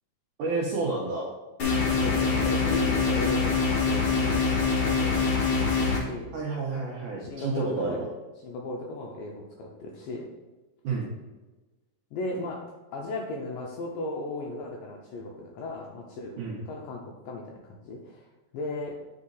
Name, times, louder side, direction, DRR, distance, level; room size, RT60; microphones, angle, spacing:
voice 1, 0.4-1.3 6.3-8.1 10.8-11.1 16.4-16.6, right 3 dB, 75° right, -3 dB, 1.9 m, -30 dB
sound 1, 1.6-6.0, left 4 dB, 65° left, 1.3 m, -24 dB
voice 2, 2.0-6.3 7.2-8.0 8.4-10.3 12.1-12.6 12.9-16.3 16.7-18.2 18.5-19.0, left 2 dB, 80° left, -1 dB, 2.0 m, -36 dB
8.7 x 4.0 x 3.9 m, 1.2 s
omnidirectional pair, 4.6 m